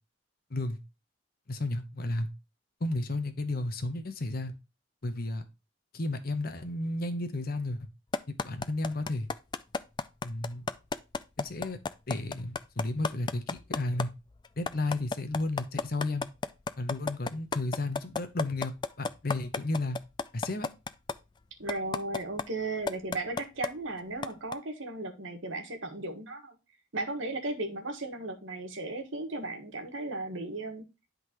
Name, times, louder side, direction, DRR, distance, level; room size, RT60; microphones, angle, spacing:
voice 1, 1.5-2.3 2.8-4.5 5.0-5.4 5.9-7.9 8.4-9.3 10.2-10.7 11.4-11.8 12.1-14.1 14.6-16.3 16.8-20.0 20.3-20.7, left 2 dB, 45° left, 0.9 m, -33 dB
sound 1, 8.1-14.0 14.4-21.1 21.7-22.4 22.9-23.7 24.2-24.5, left 4 dB, 20° left, 0.3 m, -31 dB
voice 2, 21.6-26.6 26.9-30.8, right 2 dB, 75° right, 1.5 m, -36 dB
11.0 x 3.9 x 2.9 m
head